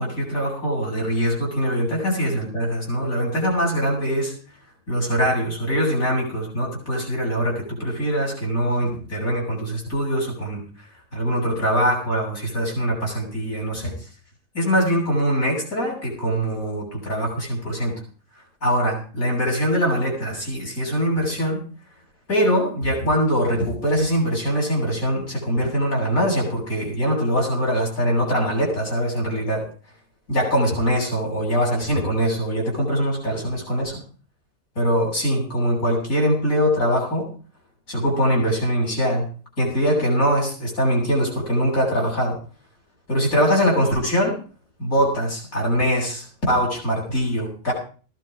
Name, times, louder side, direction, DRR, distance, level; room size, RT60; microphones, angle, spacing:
voice 1, 0.0-4.3 4.9-10.6 11.1-13.9 14.5-17.9 18.6-21.6 22.3-29.6 30.3-34.0 34.8-37.3 37.9-39.3 39.6-42.4 43.1-44.4 44.8-47.7, equal, 80° left, -3 dB, 8.3 m, -22 dB
17.0 x 12.0 x 5.1 m, 0.39 s
omnidirectional pair, 1.4 m